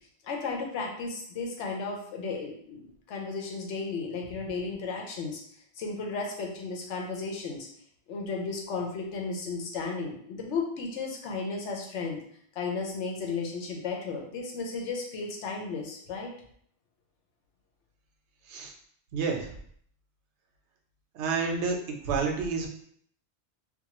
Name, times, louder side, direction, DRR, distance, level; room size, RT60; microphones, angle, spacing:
voice 1, 0.2-5.4 5.8-7.7 8.1-12.2 12.5-16.3, left 4 dB, 90° left, 0 dB, 1.0 m, -34 dB
voice 2, 19.1-19.5 21.1-22.7, right 4 dB, 80° right, 1 dB, 0.9 m, -29 dB
2.6 x 2.2 x 2.9 m, 0.63 s
omnidirectional pair, 1.2 m